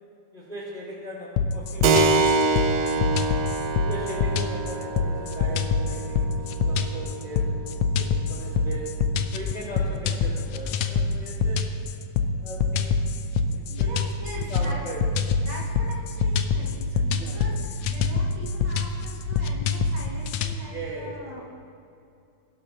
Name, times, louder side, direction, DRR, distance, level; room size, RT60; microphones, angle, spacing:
voice 1, 0.3-3.2 3.8-7.5 7.9-8.9 9.3-11.7 12.4-13.2 13.5-13.9 14.3-15.0 17.2-17.4 20.7-21.1, right 1 dB, 25° left, -5 dB, 1.7 m, -39 dB
sound 1, 1.4-20.6, left 5 dB, 90° left, 1.7 m, -25 dB
Keyboard (musical), 1.8-10.0, right 3 dB, 80° right, 1.5 m, -27 dB
voice 2, 13.7-15.0 15.4-21.4, right 1 dB, 50° right, -5 dB, 2.9 m, -41 dB
21.5 x 12.0 x 2.9 m, 2.6 s
omnidirectional pair, 4.2 m